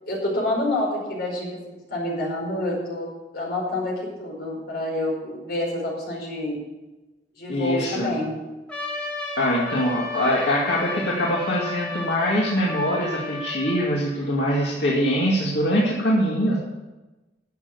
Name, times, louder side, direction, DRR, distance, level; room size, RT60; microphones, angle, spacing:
voice 1, 0.1-1.6 1.9-3.1 3.3-6.6 7.4-8.4, left 1 dB, 60° left, -2 dB, 5.0 m, -27 dB
voice 2, 7.5-8.2 9.4-16.6, equal, 80° left, -5 dB, 2.3 m, -23 dB
Trumpet, 8.7-14.0, left 2 dB, 5° left, 2.8 m, -33 dB
11.5 x 7.7 x 7.9 m, 1.1 s
head